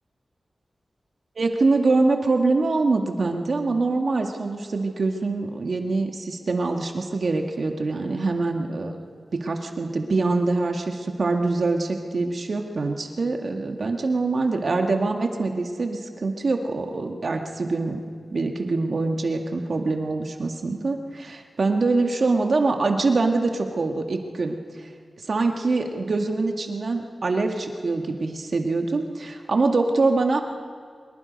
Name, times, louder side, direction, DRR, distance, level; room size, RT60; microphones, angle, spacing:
voice 1, 1.4-9.0 9.3-18.0 18.3-24.6 25.3-30.4, right 3 dB, 70° right, 3 dB, 1.9 m, -24 dB
24.0 x 21.0 x 5.3 m, 2.1 s
cardioid pair, 55°, 0 cm